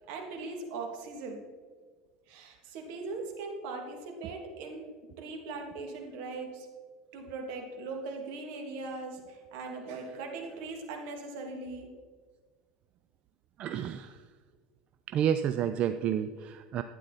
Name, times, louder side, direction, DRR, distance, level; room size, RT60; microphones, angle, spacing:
voice 1, 0.1-1.4 2.3-4.9 5.2-6.7 7.1-11.9, right 3 dB, 65° right, 2 dB, 2.4 m, -40 dB
voice 2, 13.6-14.2 15.1-16.8, right 9 dB, 40° right, 10 dB, 0.5 m, -30 dB
12.0 x 9.4 x 4.1 m, 1.5 s
supercardioid pair, 125°, 3 cm